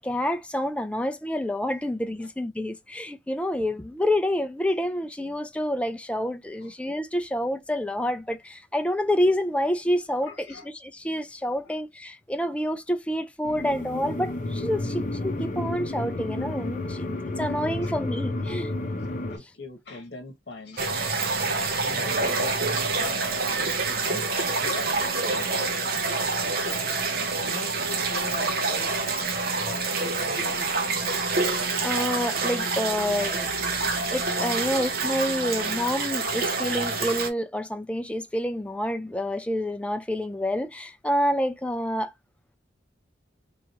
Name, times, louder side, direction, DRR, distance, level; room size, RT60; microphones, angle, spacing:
voice 1, 0.0-18.7 31.8-33.5 34.1-42.1, left 1 dB, 5° left, 0.4 m, -28 dB
voice 2, 10.2-10.7 11.6-11.8 17.8-17.9 18.4-21.1 21.4-21.5 21.8-24.2 24.6-27.0 27.4-28.9 29.5-30.6, left 3 dB, 65° left, 1.0 m, -42 dB
sound 1, 13.4-19.4, left 2 dB, 45° left, 0.7 m, -31 dB
sound 2, 20.8-37.3, right 3 dB, 55° right, 0.9 m, -27 dB
3.7 x 3.1 x 2.9 m
head